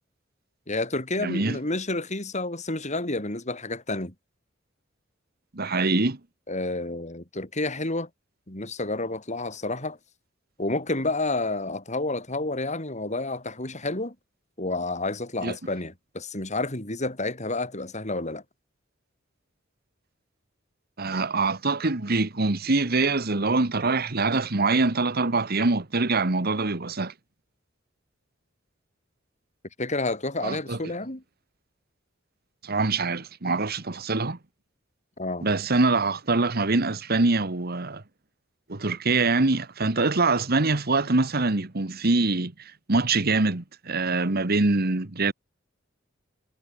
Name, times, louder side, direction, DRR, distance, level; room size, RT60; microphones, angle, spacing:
voice 1, 0.7-4.1 6.5-8.1 8.5-10.0 10.6-14.2 14.6-18.4 29.8-31.2 35.2-35.5, left 2 dB, 35° left, 5.1 m, -30 dB
voice 2, 1.2-1.6 5.5-6.2 15.4-15.6 21.0-27.1 30.4-30.8 32.6-34.4 35.4-38.0 38.7-45.3, right 3 dB, 50° right, 1.5 m, -24 dB
head